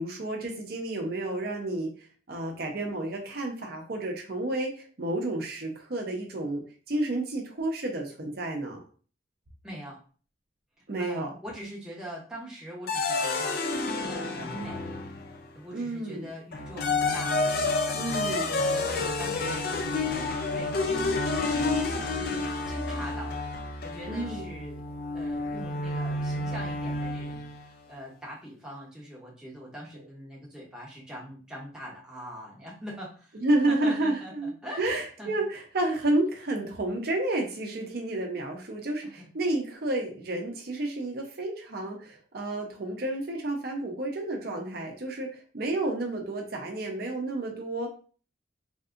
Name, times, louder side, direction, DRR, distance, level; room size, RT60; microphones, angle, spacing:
voice 1, 0.0-6.6 6.9-8.8 10.9-11.3 15.7-16.2 17.9-18.5 24.1-24.5 33.3-34.5 34.8-47.9, right 2 dB, 50° right, 1 dB, 0.6 m, -30 dB
voice 2, 9.6-10.0 11.0-15.0 15.3-17.4 17.8-24.8 25.1-33.4 33.7-34.8 35.2-35.3 39.0-39.3, equal, 5° right, -4 dB, 0.7 m, -43 dB
sound 1, 12.9-15.4 16.5-27.6, left 3 dB, 50° left, 0.4 m, -29 dB
3.5 x 2.6 x 2.4 m, 0.40 s
head